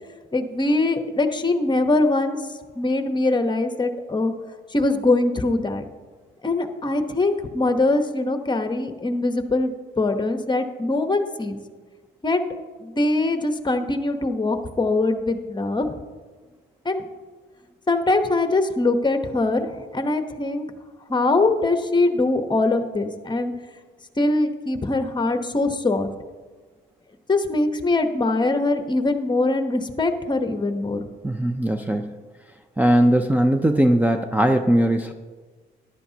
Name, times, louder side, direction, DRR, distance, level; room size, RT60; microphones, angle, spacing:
voice 1, 0.3-2.4 2.8-4.3 4.7-5.8 6.4-11.6 12.2-12.4 12.8-16.0 16.8-17.0 17.9-20.7 21.1-23.5 24.2-26.1 27.3-31.0, left 2 dB, 20° left, 7 dB, 1.0 m, -22 dB
voice 2, 31.2-32.1 32.8-35.1, right 1 dB, 10° right, 6 dB, 0.5 m, -19 dB
14.0 x 11.0 x 2.8 m, 1.4 s
cardioid pair, 90°, 20 cm